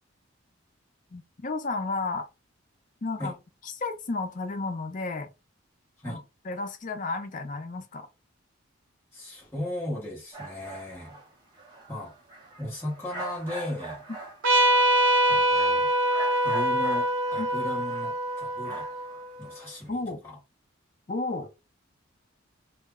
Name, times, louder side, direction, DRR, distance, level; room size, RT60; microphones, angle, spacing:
voice 1, 1.1-2.3 3.0-3.3 3.6-5.3 6.0-8.1 17.4-17.5 19.9-20.2 21.1-21.5, left 3 dB, 40° left, 0.5 m, -32 dB
voice 2, 9.1-11.2 11.9-12.1 12.6-14.0 15.3-15.9 16.3-18.8 19.4-20.4, left 1 dB, 10° left, 0.9 m, -36 dB
sound 1, 10.3-19.9, right 2 dB, 20° right, 0.7 m, -44 dB
Trumpet, 14.4-19.5, right 1 dB, 70° right, 0.6 m, -24 dB
2.1 x 2.1 x 3.5 m
head